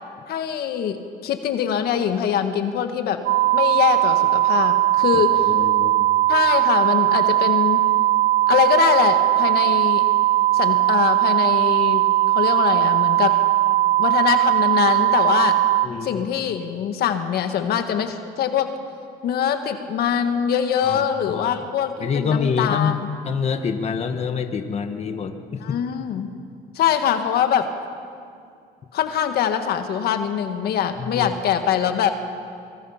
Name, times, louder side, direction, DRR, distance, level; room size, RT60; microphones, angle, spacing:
voice 1, 0.3-1.0 1.2-3.2 3.5-5.4 6.3-7.8 8.5-10.0 10.5-12.1 12.3-13.3 14.0-15.6 16.0-18.7 19.2-22.9 25.6-26.3 26.7-27.7 28.9-32.1, left 9 dB, 70° left, 7 dB, 1.5 m, -23 dB
sound 1, 3.3-15.9, right 15 dB, 90° right, 0.7 m, -19 dB
voice 2, 5.1-6.1 15.8-16.2 20.8-21.6 22.0-23.0 23.2-25.8 31.0-31.4, left 6 dB, 40° left, 6 dB, 1.4 m, -26 dB
24.0 x 23.5 x 5.8 m, 2.3 s
cardioid pair, 110°, 17 cm